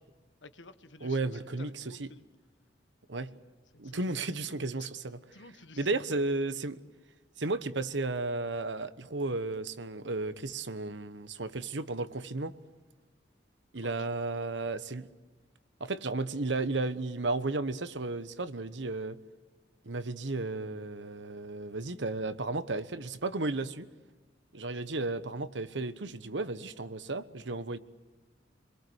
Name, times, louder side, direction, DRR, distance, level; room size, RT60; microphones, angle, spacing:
voice 1, 0.4-2.2 3.7-4.1 4.8-4.9 5.3-6.2 13.7-14.1 24.7-24.8, left 3 dB, 80° left, 1.5 m, -52 dB
voice 2, 1.0-2.1 3.1-3.3 3.8-5.2 5.8-6.8 7.4-12.5 13.7-15.1 15.8-19.2 19.8-23.9 24.5-27.8, right 3 dB, 75° right, 1.2 m, -34 dB
27.5 x 22.0 x 8.1 m
head